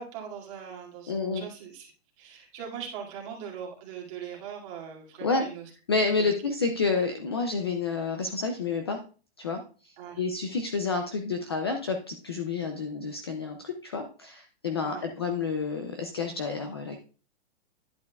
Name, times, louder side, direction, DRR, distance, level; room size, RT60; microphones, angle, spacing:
voice 1, 0.0-1.9 2.2-5.7 6.2-6.3 10.0-10.2 14.8-15.1, right 7 dB, 30° right, -2 dB, 2.3 m, -40 dB
voice 2, 1.1-1.4 5.2-5.5 5.9-9.0 9.4-9.6 10.2-17.0, left 4 dB, 25° left, 5 dB, 0.4 m, -29 dB
10.5 x 8.3 x 2.3 m, 0.36 s
hypercardioid pair, 175°, 33 cm